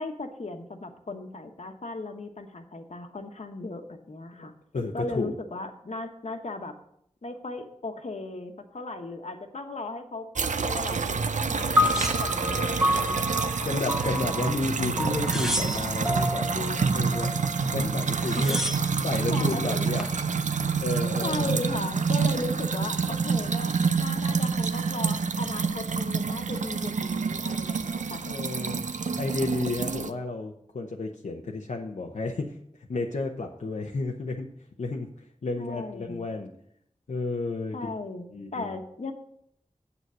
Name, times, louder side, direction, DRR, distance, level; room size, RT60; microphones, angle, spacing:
voice 1, 0.0-4.5 4.9-6.7 7.2-10.3 10.6-13.7 18.4-18.7 19.3-19.9 21.2-28.2 35.6-36.3 37.7-38.2 38.5-39.1, left 2 dB, 65° left, 5 dB, 1.2 m, -37 dB
voice 2, 4.3-5.3 13.6-18.6 19.0-20.1 20.8-21.6 28.2-34.5 34.8-36.5 37.1-38.0 38.3-38.7, left 3 dB, 85° left, 0 dB, 0.8 m, -32 dB
sound 1, 10.3-30.1, right 5 dB, 80° right, 0.5 m, -28 dB
sound 2, 11.7-13.1 13.5-14.3 15.0-16.1 17.7-17.8 18.0-19.0 19.7-20.2, equal, 5° right, 1.0 m, -35 dB
sound 3, 11.8-18.2, left 1 dB, 20° right, 0.7 m, -30 dB
8.0 x 6.9 x 6.2 m, 0.71 s
wide cardioid pair, 50°, 12 cm